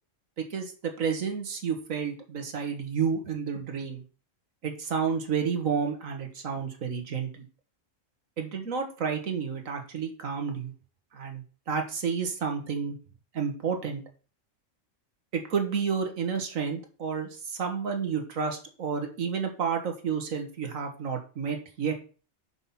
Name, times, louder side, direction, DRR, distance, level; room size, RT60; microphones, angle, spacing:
voice 1, 0.5-4.0 4.6-7.5 8.4-10.7 11.1-13.0 13.3-14.0 15.3-21.9, right 6 dB, 85° right, 4 dB, 1.9 m, -30 dB
5.8 x 5.6 x 5.8 m, 0.37 s
omnidirectional pair, 1.4 m